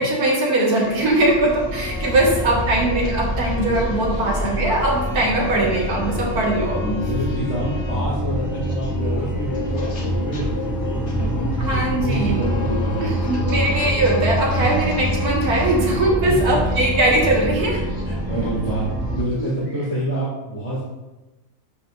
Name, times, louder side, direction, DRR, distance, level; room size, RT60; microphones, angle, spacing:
voice 1, 0.0-6.9 11.6-12.4 13.0-17.8 19.4-19.5, right 1 dB, 70° right, -2 dB, 2.0 m, -20 dB
sound 1, 0.6-19.5, left 2 dB, 50° left, 1.3 m, -37 dB
sound 2, 0.8-19.2, equal, ahead, 0.6 m, -25 dB
voice 2, 7.0-11.2 11.7-13.7 14.6-14.8 18.0-18.9 19.1-20.8, right 1 dB, 20° left, -9 dB, 2.0 m, -27 dB
12.0 x 5.1 x 2.4 m, 1.1 s
omnidirectional pair, 1.7 m